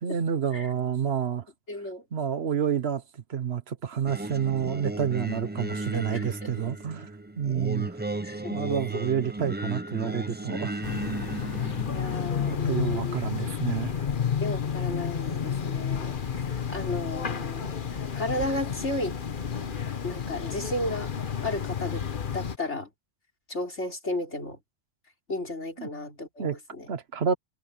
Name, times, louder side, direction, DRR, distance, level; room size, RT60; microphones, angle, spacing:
voice 1, 0.0-1.5 2.1-7.1 7.4-8.0 8.5-10.9 12.6-14.1 25.8-25.9 26.4-26.5 26.9-27.3, right 8 dB, 65° right, 1.3 m, -29 dB
voice 2, 1.7-2.0 5.9-6.5 8.2-9.1 11.5-13.2 14.4-19.2 20.0-21.1 21.4-22.0 22.3-22.9 23.5-24.6 25.3-26.9, left 1 dB, 85° left, 5.3 m, -34 dB
Singing, 4.1-12.5, right 2 dB, 10° right, 0.5 m, -35 dB
sound 1, 10.8-22.6, left 7 dB, 50° left, 1.2 m, -31 dB
omnidirectional pair, 1.2 m